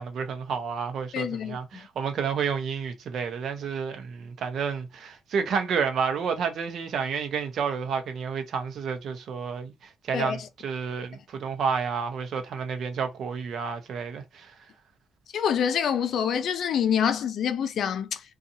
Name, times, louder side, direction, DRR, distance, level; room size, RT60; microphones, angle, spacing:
voice 1, 0.0-14.5, right 6 dB, 65° right, 0.6 m, -30 dB
voice 2, 1.1-1.8 10.1-10.5 15.3-18.2, left 8 dB, 65° left, 0.5 m, -26 dB
2.6 x 2.3 x 2.7 m
cardioid pair, 90°, 0 cm